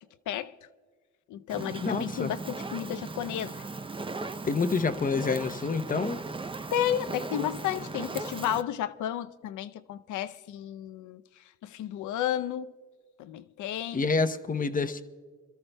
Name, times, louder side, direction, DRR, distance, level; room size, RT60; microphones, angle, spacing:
voice 1, 1.3-3.7 6.7-11.2 11.6-12.7 13.2-14.1, left 11 dB, 80° left, 0.6 m, -32 dB
Fire, 1.5-8.6, right 3 dB, 15° right, 0.6 m, -38 dB
voice 2, 1.8-2.3 4.4-6.2 13.9-15.0, left 4 dB, 30° left, 0.8 m, -27 dB
27.0 x 13.5 x 2.2 m
cardioid pair, 90°, 30 cm